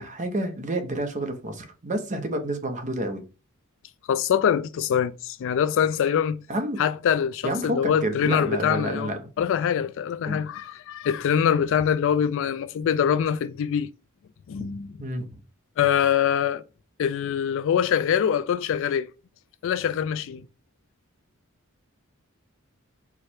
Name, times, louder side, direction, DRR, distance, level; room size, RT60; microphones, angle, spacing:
voice 1, 0.0-3.2 6.5-6.8 7.4-9.2 10.3-10.4 15.0-15.3, right 1 dB, 35° right, 0.8 m, -29 dB
voice 2, 4.1-6.4 6.8-9.1 9.4-13.9 14.5-14.9 15.8-16.6 17.0-19.1 19.6-20.5, left 8 dB, 60° left, 0.3 m, -24 dB
4.7 x 2.2 x 4.3 m
head